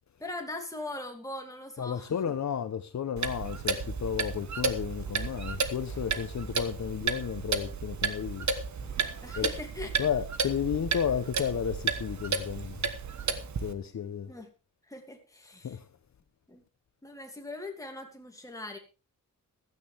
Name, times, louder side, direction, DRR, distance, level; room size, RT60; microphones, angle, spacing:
voice 1, 0.2-2.3 9.2-9.9 14.3-14.5 14.9-15.8 16.5-16.6 17.0-18.8, left 2 dB, 10° left, 2.7 m, -41 dB
voice 2, 1.8-8.5 9.3-9.5 10.0-12.9 13.6-14.3 15.6-15.8, left 8 dB, 55° left, 0.9 m, -32 dB
Clock, 3.2-13.7, right 5 dB, 60° right, 1.4 m, -33 dB
15.5 x 13.0 x 3.5 m
wide cardioid pair, 175°, 33 cm